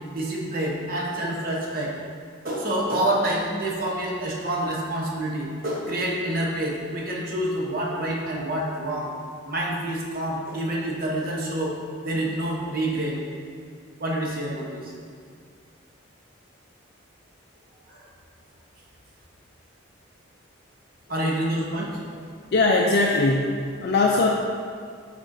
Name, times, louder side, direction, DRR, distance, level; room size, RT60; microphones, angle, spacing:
voice 1, 0.1-1.9 2.4-9.1 9.5-11.7 12.0-13.2 14.0-14.9 17.9-18.1 21.1-22.2, right 1 dB, 45° right, -3 dB, 1.0 m, -27 dB
voice 2, 22.5-24.3, left 3 dB, 50° left, -1 dB, 0.4 m, -21 dB
8.4 x 5.1 x 2.7 m, 2.1 s
head